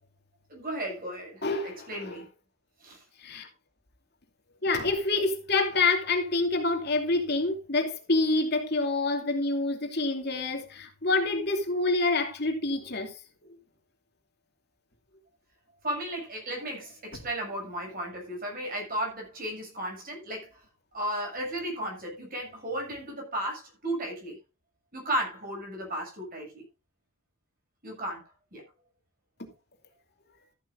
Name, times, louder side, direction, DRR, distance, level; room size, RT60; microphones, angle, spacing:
voice 1, 0.5-2.2 2.8-3.0 15.8-20.5 20.9-24.4 24.9-26.6 27.8-28.2 28.5-28.6, right 1 dB, 45° right, 7.2 m, -34 dB
voice 2, 1.4-2.2 3.2-3.5 4.6-13.1, left 3 dB, 50° left, 2.8 m, -27 dB
14.0 x 12.0 x 2.7 m
head